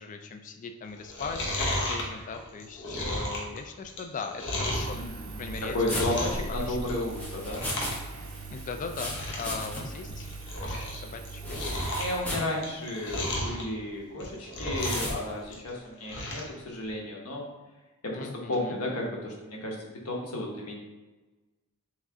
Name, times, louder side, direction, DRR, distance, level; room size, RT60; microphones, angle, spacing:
voice 1, 0.0-5.0 5.4-6.2 6.7-6.8 8.5-10.3 10.6-11.6 18.1-18.8, left 5 dB, 35° left, 5 dB, 0.3 m, -39 dB
Chewing mastication, 1.0-5.0 5.4-6.5 6.7-7.1 7.4-8.0 8.2-8.3 8.8-8.9 9.1-9.5 9.9-11.0 11.2-13.6 14.1-15.1 15.4-16.5 16.9-17.0, left 1 dB, 60° left, 0.9 m, -33 dB
Engine, 4.7-12.2, right 3 dB, 65° right, 0.5 m, -42 dB
voice 2, 4.9-7.6 12.0-17.5 18.0-20.8, left 1 dB, 90° left, -2 dB, 1.0 m, -33 dB
sound 1, 5.9-8.0 8.3-10.1 10.3-10.4 11.4-12.5 13.1-13.3 14.8-15.2, left 1 dB, 5° left, 0.8 m, -36 dB
3.7 x 3.1 x 3.5 m, 1.2 s
head